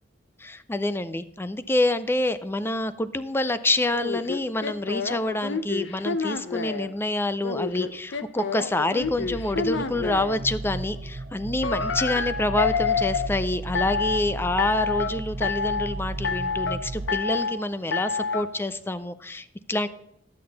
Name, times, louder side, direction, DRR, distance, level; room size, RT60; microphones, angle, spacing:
voice 1, 0.4-19.9, left 2 dB, 15° left, 12 dB, 0.4 m, -27 dB
sound 1, 3.9-6.9 7.4-10.4 11.6-13.3 13.8-14.2 14.6-15.1 15.4-15.9 16.2-16.8 17.1-17.6 17.9-18.4, left 5 dB, 85° left, 0.6 m, -28 dB
sound 2, 9.0-17.1, right 2 dB, 60° right, 0.9 m, -35 dB
10.5 x 8.6 x 4.0 m, 0.79 s
head